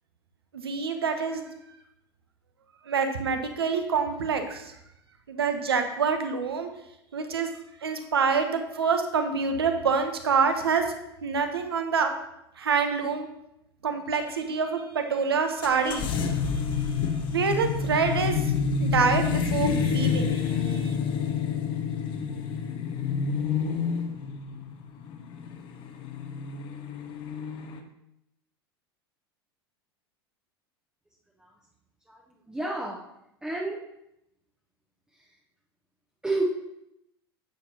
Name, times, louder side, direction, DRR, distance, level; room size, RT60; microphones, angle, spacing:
voice 1, 0.5-1.5 2.9-4.7 5.3-6.7 7.1-7.5 7.8-10.9 11.2-12.1 12.6-13.3 13.8-16.1 17.3-18.4 18.8-21.0, right 5 dB, 70° right, 6 dB, 1.0 m, -26 dB
sound 1, 15.6-27.8, left 6 dB, 35° left, 0.9 m, -28 dB
voice 2, 32.5-33.0 33.4-33.8 36.2-36.4, right 2 dB, 5° right, -2 dB, 0.9 m, -30 dB
10.5 x 7.4 x 2.9 m, 0.83 s
figure-of-eight pair, 80°, 13 cm